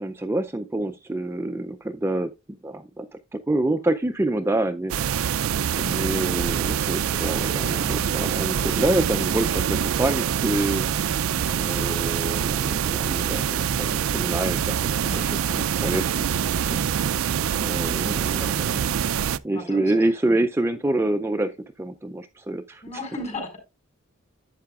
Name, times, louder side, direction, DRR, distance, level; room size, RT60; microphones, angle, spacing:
voice 1, 0.0-2.3 2.6-3.1 3.3-4.9 5.7-10.8 11.5-16.0 16.7-16.8 17.6-18.8 19.4-22.8, right 1 dB, 10° right, 0.4 m, -27 dB
sound 1, 4.9-19.4, right 8 dB, 75° right, 0.4 m, -25 dB
voice 2, 7.4-7.9 8.2-8.5 15.0-15.7 17.6-17.7 18.0-18.8 19.1-19.2 19.5-20.3 22.8-23.6, left 1 dB, 30° left, 4.0 m, -38 dB
11.5 x 8.1 x 2.4 m
head